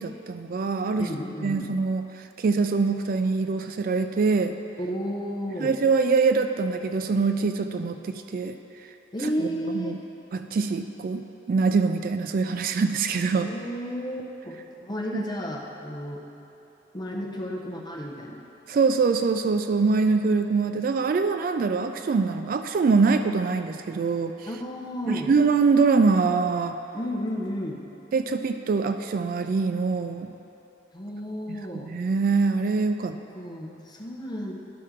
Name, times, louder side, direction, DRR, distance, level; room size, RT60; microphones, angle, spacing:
voice 1, 0.0-1.1 1.4-2.1 2.4-4.5 5.6-8.6 9.4-9.5 9.7-10.0 10.3-13.5 15.1-15.2 18.7-24.3 25.1-26.8 28.1-30.3 31.8-33.2, right 4 dB, 50° right, 8 dB, 0.3 m, -24 dB
voice 2, 0.9-1.7 4.8-5.8 9.1-10.0 13.3-16.2 16.9-18.4 24.5-25.3 26.9-27.8 30.9-31.9 33.1-34.5, equal, 25° left, -1 dB, 0.9 m, -33 dB
11.5 x 4.3 x 5.0 m, 2.9 s
head